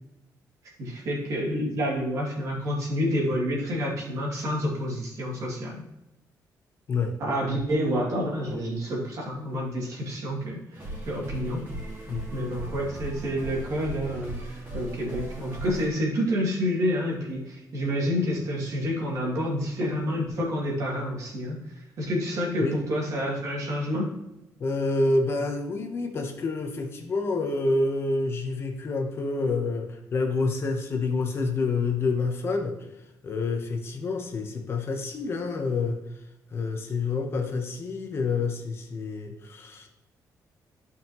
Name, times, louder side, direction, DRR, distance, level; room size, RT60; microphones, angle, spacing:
voice 1, 0.8-5.8 7.2-11.6 12.3-21.6 22.0-24.1, equal, 55° right, -3 dB, 2.5 m, -28 dB
sound 1, 10.7-15.9, right 1 dB, 30° right, 2.9 m, -37 dB
voice 2, 24.6-32.8 33.2-36.0 36.5-39.9, left 3 dB, 35° left, 4 dB, 0.9 m, -28 dB
12.0 x 5.4 x 3.0 m, 0.90 s
cardioid pair, 170°, 7 cm